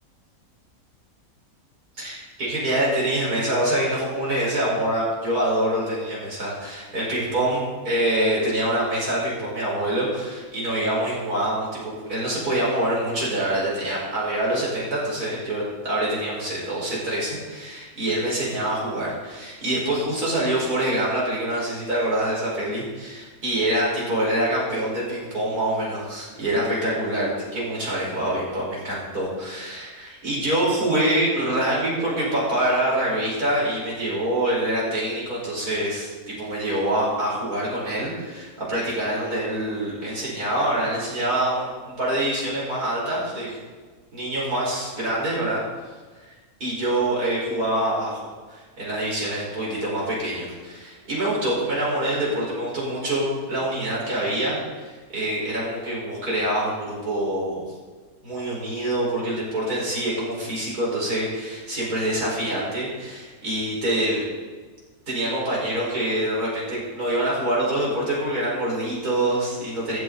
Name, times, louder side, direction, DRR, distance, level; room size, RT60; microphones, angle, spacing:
voice 1, 2.0-41.7 42.0-43.6 44.1-45.6 46.6-48.2 48.5-57.7 58.2-64.2 65.1-70.0, right 1 dB, 90° right, -5 dB, 5.6 m, -25 dB
15.0 x 13.5 x 4.1 m, 1.4 s
omnidirectional pair, 1.6 m